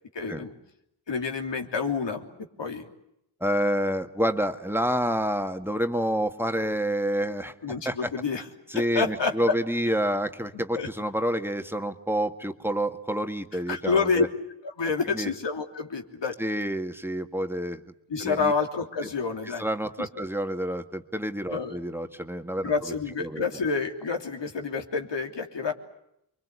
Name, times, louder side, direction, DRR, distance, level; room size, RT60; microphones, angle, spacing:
voice 1, 0.1-0.5 1.1-2.3 2.6-2.9 7.6-8.4 8.7-9.6 10.5-10.9 13.7-14.3 14.6-16.4 18.1-19.7 20.0-20.2 21.5-21.8 22.6-25.7, left 4 dB, 90° left, 3 dB, 3.2 m, -28 dB
voice 2, 3.4-7.5 7.8-8.1 8.7-14.3 15.1-15.3 16.4-17.8 18.2-18.5 19.6-23.4, equal, 5° right, 6 dB, 1.8 m, -28 dB
28.5 x 23.5 x 8.3 m, 0.80 s
wide cardioid pair, 75°, 42 cm